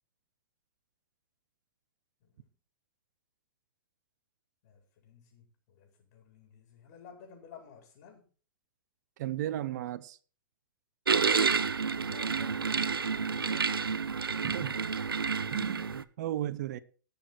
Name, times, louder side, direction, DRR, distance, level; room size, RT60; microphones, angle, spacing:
voice 1, 2.2-2.5 4.6-8.3 11.9-13.8, left 6 dB, 45° left, 4.5 m, -54 dB
voice 2, 9.2-10.2 14.4-14.8 15.5-16.8, right 12 dB, 50° right, 0.9 m, -35 dB
sound 1, 11.1-16.0, right 5 dB, 85° right, 0.7 m, -29 dB
19.5 x 6.7 x 4.7 m
hypercardioid pair, 120°, 12 cm